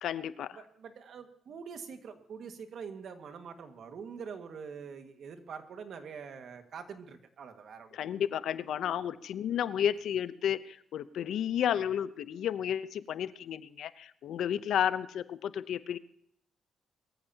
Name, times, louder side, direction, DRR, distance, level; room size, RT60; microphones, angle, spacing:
voice 1, 0.0-0.6 7.9-16.0, left 9 dB, 70° left, 15 dB, 0.7 m, -32 dB
voice 2, 0.6-8.0, right 6 dB, 60° right, 6 dB, 1.8 m, -45 dB
22.0 x 14.5 x 2.9 m, 0.69 s
cardioid pair, 90°, 0 cm